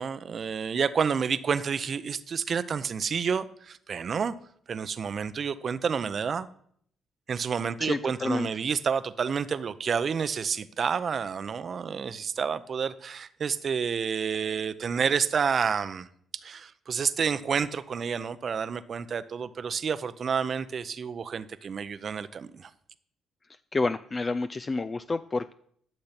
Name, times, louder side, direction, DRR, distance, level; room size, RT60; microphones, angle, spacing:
voice 1, 0.0-4.3 4.7-6.5 7.3-16.1 16.4-22.7, right 6 dB, 50° right, 0.7 m, -29 dB
voice 2, 7.8-8.5 23.7-25.5, left 3 dB, 30° left, 0.4 m, -29 dB
12.0 x 6.8 x 5.9 m
cardioid pair, 90°, 0 cm